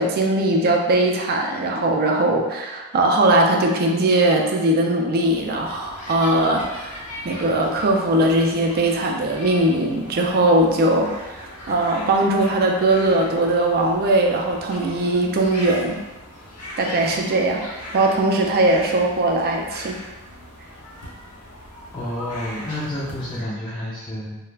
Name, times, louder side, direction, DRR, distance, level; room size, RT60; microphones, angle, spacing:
voice 1, 0.0-7.0 7.2-16.0 16.8-20.0, right 1 dB, 45° right, 1 dB, 0.3 m, -20 dB
sound 1, 5.2-23.4, left 1 dB, 85° left, 0.7 m, -39 dB
voice 2, 21.9-24.4, left 1 dB, 20° left, -9 dB, 0.4 m, -29 dB
2.3 x 2.1 x 3.1 m, 1.2 s
head